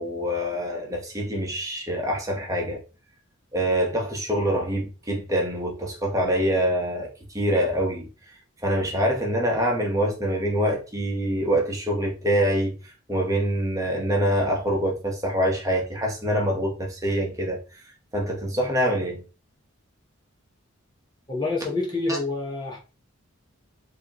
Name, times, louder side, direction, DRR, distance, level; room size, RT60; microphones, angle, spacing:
voice 1, 0.0-2.8 3.5-8.1 8.6-17.8 18.1-19.2 22.1-22.2, equal, 15° right, 1.0 m, -25 dB
voice 2, 21.3-22.8, left 3 dB, 20° left, 0.9 m, -27 dB
4.8 x 2.9 x 2.9 m
head